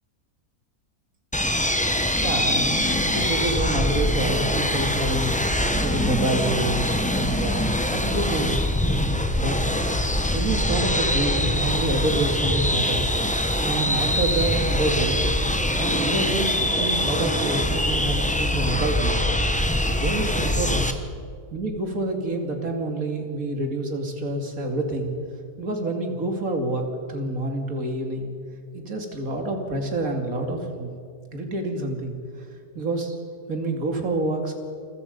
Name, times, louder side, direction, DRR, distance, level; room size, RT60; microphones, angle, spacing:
sound 1, 1.3-20.9, left 1 dB, 5° left, 0.8 m, -23 dB
voice 1, 2.2-5.3 5.8-8.6 9.4-9.6 10.3-13.0 13.6-15.3 15.7-19.2 19.8-20.9 21.5-25.1 25.6-28.3 28.7-30.9 31.3-32.1 32.7-33.2 33.5-34.5, right 2 dB, 60° right, 3 dB, 2.9 m, -27 dB
28.5 x 22.5 x 5.4 m, 2.3 s
omnidirectional pair, 1.6 m